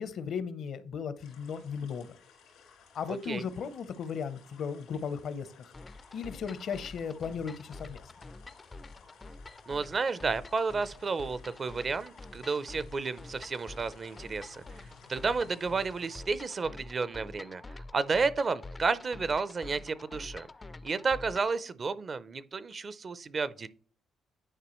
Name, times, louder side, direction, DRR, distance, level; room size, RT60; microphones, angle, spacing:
voice 1, 0.0-2.1 2.9-5.7 6.1-8.1, left 6 dB, 65° left, 0.7 m, -36 dB
sound 1, 1.2-16.2, left 5 dB, 90° left, 2.2 m, -59 dB
voice 2, 3.1-3.4 9.7-14.8 15.1-20.5 20.8-23.7, right 4 dB, 40° right, 0.5 m, -32 dB
sound 2, 5.7-21.6, left 2 dB, 25° left, 0.4 m, -47 dB
9.9 x 4.7 x 3.0 m
cardioid pair, 90°, 0 cm